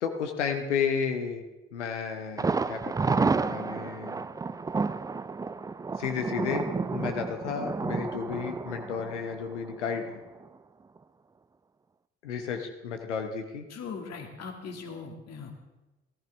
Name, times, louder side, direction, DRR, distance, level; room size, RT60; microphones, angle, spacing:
voice 1, 0.0-1.4 1.7-4.2 6.0-10.2 12.2-13.7, left 6 dB, 75° left, 6 dB, 1.0 m, -32 dB
Thunder, 2.4-10.1 10.4-10.5 11.0-11.1, right 4 dB, 10° right, 0.4 m, -31 dB
voice 2, 13.7-15.5, left 5 dB, 45° left, 3 dB, 2.2 m, -40 dB
14.0 x 14.0 x 3.5 m, 1.1 s
figure-of-eight pair, 50°, 35 cm